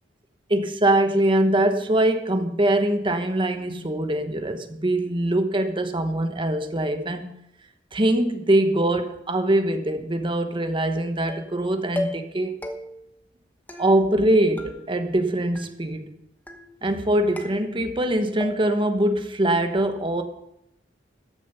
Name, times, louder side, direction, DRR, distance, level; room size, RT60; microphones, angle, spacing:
voice 1, 0.5-7.3 7.9-12.6 13.8-16.1 16.8-20.2, right 1 dB, 25° right, 7 dB, 1.1 m, -23 dB
sound 1, 11.3-11.6 12.0-12.4 12.6-13.1 13.7-14.3 14.6-15.2 15.6-16.1 16.5-17.0 17.4-18.1 18.4-18.9, left 1 dB, 10° left, 1.2 m, -36 dB
14.0 x 7.1 x 5.6 m, 0.79 s
head